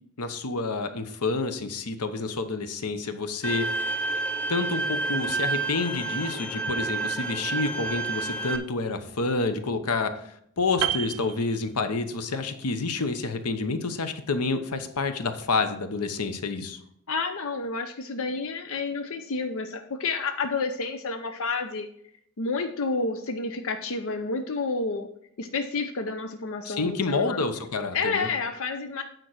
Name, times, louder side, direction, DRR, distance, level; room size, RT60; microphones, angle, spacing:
voice 1, 0.2-3.9 4.5-16.8 26.6-28.3, left 3 dB, 90° left, 9 dB, 0.9 m, -29 dB
Bowed string instrument, 3.4-8.6, right 3 dB, 5° left, 0.6 m, -29 dB
Piano, 10.8-12.3 12.5-12.8, right 10 dB, 65° right, 0.6 m, -31 dB
voice 2, 17.1-21.9 22.4-25.1 25.4-27.4 27.9-29.0, left 4 dB, 65° left, 6 dB, 0.6 m, -30 dB
9.0 x 4.5 x 6.1 m, 0.71 s
head